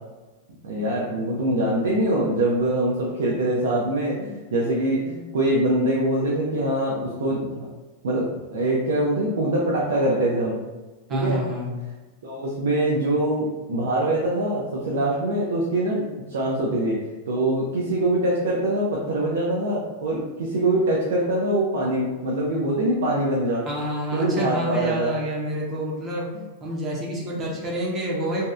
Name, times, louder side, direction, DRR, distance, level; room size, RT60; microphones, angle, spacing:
voice 1, 0.6-7.7 8.0-10.6 11.1-11.4 12.2-16.0 16.3-17.0 17.3-23.6 24.1-25.1 27.4-27.5, right 1 dB, 90° right, -4 dB, 0.4 m, -23 dB
voice 2, 11.1-11.7 23.7-26.3 26.6-28.5, equal, 20° right, -3 dB, 0.4 m, -28 dB
2.6 x 2.0 x 2.3 m, 1.2 s
supercardioid pair, 165°, 0 cm